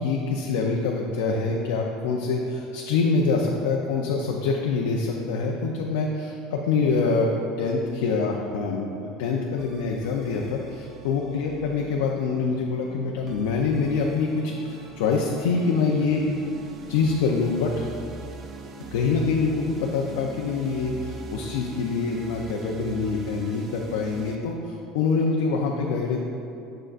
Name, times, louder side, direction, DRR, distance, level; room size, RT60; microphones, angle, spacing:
voice 1, 0.0-16.2 16.9-17.9 18.9-26.2, left 4 dB, 90° left, 0 dB, 0.5 m, -25 dB
sound 1, 9.6-24.4, right 4 dB, 30° right, 0.5 m, -42 dB
7.6 x 6.4 x 2.5 m, 2.9 s
cardioid pair, 155°, 0 cm